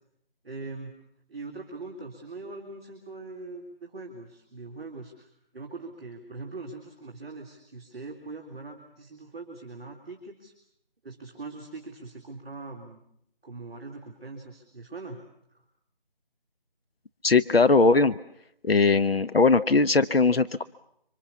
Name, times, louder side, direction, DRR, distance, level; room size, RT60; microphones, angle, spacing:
voice 1, 0.4-0.9 1.3-10.5 11.0-13.0 13.4-15.2 15.5-15.6, right 3 dB, 5° right, -15 dB, 2.5 m, -41 dB
voice 2, 17.2-18.2 18.6-20.6, left 3 dB, 80° left, 13 dB, 1.0 m, -20 dB
26.5 x 25.5 x 7.1 m, 0.74 s
figure-of-eight pair, 180°, 29 cm